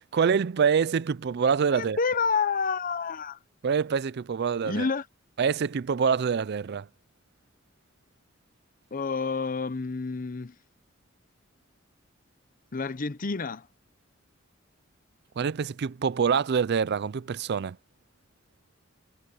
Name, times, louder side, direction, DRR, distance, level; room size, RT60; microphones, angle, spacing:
voice 1, 0.0-2.0 3.6-4.9 5.4-6.9 15.4-17.8, right 6 dB, 55° right, 0.4 m, -25 dB
voice 2, 1.7-3.4 4.6-5.0 8.9-10.5 12.7-13.7, left 5 dB, 45° left, 0.8 m, -29 dB
head